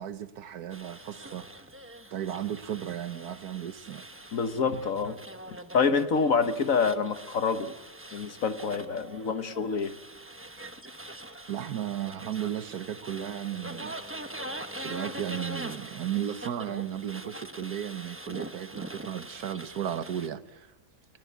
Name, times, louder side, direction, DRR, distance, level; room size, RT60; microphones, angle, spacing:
voice 1, 0.0-1.5 2.1-4.1 11.5-14.0 14.8-20.7, right 10 dB, 65° right, 1.6 m, -35 dB
sound 1, 0.7-20.3, right 1 dB, 10° right, 0.8 m, -43 dB
voice 2, 4.3-5.2 5.7-7.7 8.1-10.0, left 5 dB, 55° left, 1.5 m, -27 dB
30.0 x 18.0 x 8.4 m
omnidirectional pair, 1.8 m